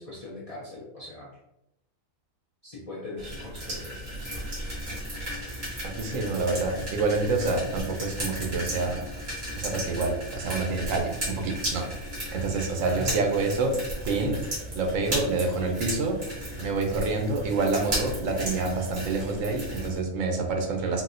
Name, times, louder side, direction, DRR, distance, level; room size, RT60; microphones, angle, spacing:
voice 1, 0.0-1.4 2.6-4.0 12.8-13.3 13.9-14.0, left 3 dB, 50° left, -6 dB, 0.4 m, -39 dB
sound 1, 3.2-20.0, equal, 50° right, 1.6 m, -35 dB
voice 2, 5.8-9.0 9.6-11.8 12.3-13.8 14.0-14.4 14.7-16.2 16.6-21.0, right 3 dB, 75° right, 2 dB, 1.0 m, -27 dB
4.0 x 2.1 x 2.5 m, 0.86 s
omnidirectional pair, 1.4 m